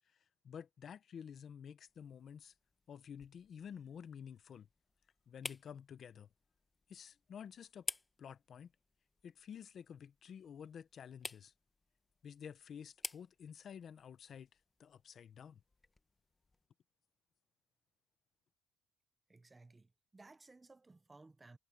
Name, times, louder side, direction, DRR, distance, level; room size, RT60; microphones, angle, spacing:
voice 1, 0.1-2.5 2.9-4.7 5.3-6.3 6.9-7.9 8.2-8.7 9.2-11.5 12.2-14.5 14.8-15.6, left 8 dB, 40° left, 0.9 m, -51 dB
sound 1, 1.9-16.7, left 3 dB, 15° left, 1.4 m, -53 dB
voice 2, 19.3-21.6, right 3 dB, 15° right, 0.9 m, -59 dB
cardioid pair, 135°, 0 cm